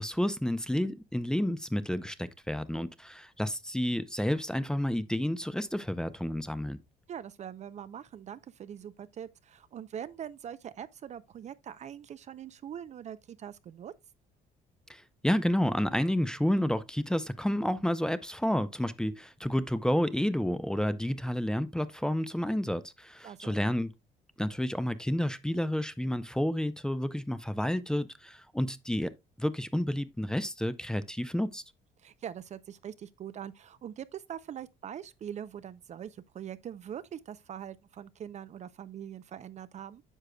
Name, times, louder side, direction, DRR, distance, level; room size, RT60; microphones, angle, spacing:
voice 1, 0.0-6.8 14.9-23.9 24.4-31.6, equal, 5° left, 0.5 m, -30 dB
voice 2, 7.1-13.9 23.2-23.6 32.0-40.0, right 9 dB, 45° right, 0.5 m, -43 dB
9.9 x 6.3 x 2.2 m
cardioid pair, 110°, 17 cm